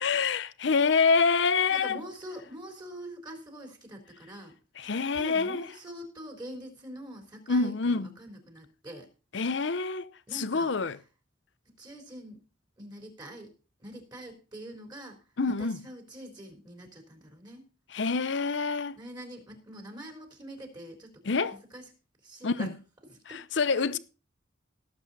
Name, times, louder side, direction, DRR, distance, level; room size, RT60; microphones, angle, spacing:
voice 1, 0.0-2.0 4.8-5.7 7.5-8.1 9.3-11.0 15.4-15.8 17.9-19.0 21.3-21.6 22.4-22.7 23.3-24.0, left 4 dB, 65° left, 0.7 m, -26 dB
voice 2, 1.7-4.5 4.8-9.1 10.3-10.7 11.8-12.4 12.8-13.5 13.8-15.2 15.5-17.6 19.0-21.2 21.5-21.9 22.2-22.7 23.1-23.6, right 1 dB, 20° right, 3.6 m, -44 dB
17.5 x 7.8 x 4.1 m
head